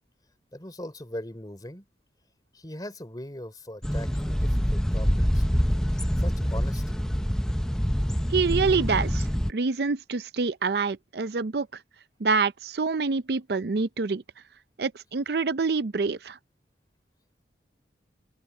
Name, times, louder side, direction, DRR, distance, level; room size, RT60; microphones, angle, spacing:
voice 1, 0.5-1.9 2.5-5.6 5.9-7.0, left 1 dB, 20° left, 3.6 m, -40 dB
sound 1, 3.8-9.5, equal, 5° left, 0.6 m, -25 dB
voice 2, 8.3-11.7 12.2-14.2 14.8-16.4, right 4 dB, 65° right, 0.5 m, -26 dB
open air
head